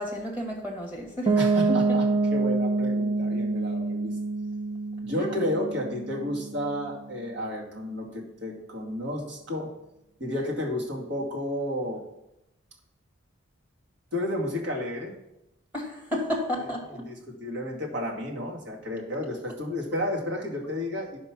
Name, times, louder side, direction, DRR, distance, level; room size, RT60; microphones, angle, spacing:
voice 1, 0.0-1.3 1.7-1.8 5.2-5.3 15.7-17.0, left 1 dB, 10° right, -1 dB, 1.9 m, -31 dB
Piano, 1.3-7.0, right 3 dB, 25° right, 0.9 m, -26 dB
voice 2, 1.4-4.1 5.0-9.7 10.2-12.0 14.1-15.1 16.9-21.2, left 1 dB, 60° right, -1 dB, 2.3 m, -32 dB
10.5 x 5.5 x 6.1 m, 0.87 s
head